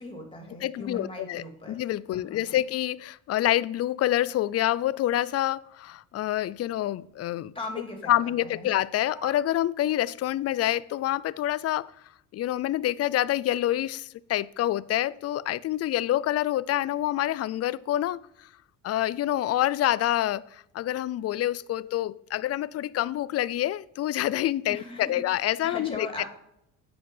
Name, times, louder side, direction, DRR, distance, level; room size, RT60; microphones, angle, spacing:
voice 1, 0.0-1.9 2.1-2.6 7.5-8.7 24.7-26.2, left 2 dB, 15° left, 2.6 m, -40 dB
voice 2, 0.6-7.5 8.1-11.9 12.3-18.5 18.8-26.2, left 13 dB, 45° left, 0.4 m, -27 dB
sound 1, 8.8-9.5, right 3 dB, 25° right, 1.8 m, -45 dB
9.1 x 5.0 x 5.5 m
cardioid pair, 105°, 33 cm